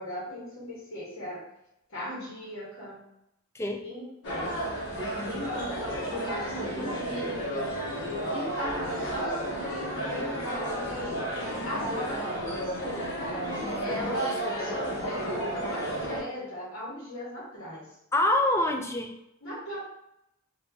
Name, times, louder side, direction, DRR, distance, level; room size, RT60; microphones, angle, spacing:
voice 1, 0.0-1.4 1.9-3.0 3.8-4.6 4.9-5.0 5.3-7.8 8.2-11.2 11.6-13.1 13.8-18.0 19.4-19.8, equal, 80° left, -6 dB, 1.3 m, -38 dB
sound 1, 4.2-16.2, right 1 dB, 60° left, 1.2 m, -32 dB
voice 2, 13.6-14.8 18.1-19.2, left 1 dB, 15° left, 4 dB, 0.3 m, -28 dB
2.9 x 2.6 x 3.5 m, 0.81 s
head